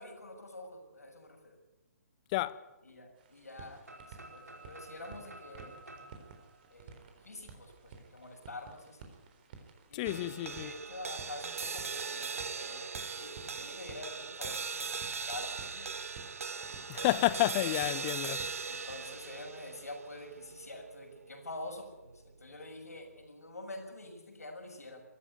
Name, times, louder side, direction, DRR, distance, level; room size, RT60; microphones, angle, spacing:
voice 1, 0.0-1.6 2.8-3.8 4.1-5.8 6.7-9.1 9.9-15.9 18.6-25.0, left 2 dB, 70° left, 6.8 m, -47 dB
sound 1, 3.2-19.0, right 5 dB, 35° right, 3.9 m, -54 dB
sound 2, 3.8-7.7, right 2 dB, 75° right, 4.7 m, -52 dB
voice 2, 9.9-10.7 16.9-18.5, left 18 dB, 25° left, 0.8 m, -30 dB
sound 3, 10.0-22.5, right 5 dB, 60° right, 1.2 m, -40 dB
23.0 x 14.5 x 9.6 m
figure-of-eight pair, 135°, 9 cm